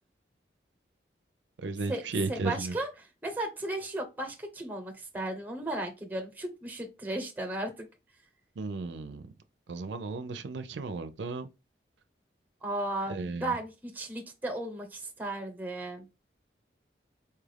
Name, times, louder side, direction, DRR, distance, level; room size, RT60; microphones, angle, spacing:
voice 1, 1.6-2.7 8.6-9.3 9.7-11.5 13.1-13.5, right 3 dB, 85° right, 0.5 m, -34 dB
voice 2, 2.3-7.9 12.6-16.0, right 1 dB, 10° right, 0.8 m, -35 dB
4.5 x 2.4 x 3.3 m
head